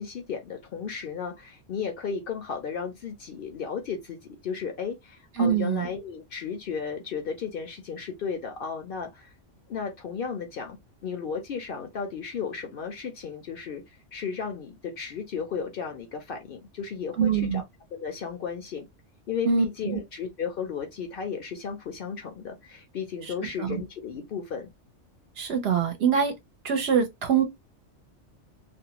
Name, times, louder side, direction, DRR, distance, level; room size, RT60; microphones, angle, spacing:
voice 1, 0.0-9.3 9.7-13.8 14.1-17.6 17.9-18.9 19.3-24.7, left 6 dB, 55° left, 0.7 m, -34 dB
voice 2, 5.4-5.9 17.2-17.6 19.5-20.0 23.6-23.8 25.4-26.3 26.6-27.4, right 7 dB, 65° right, 0.8 m, -24 dB
2.5 x 2.1 x 2.8 m
omnidirectional pair, 1.3 m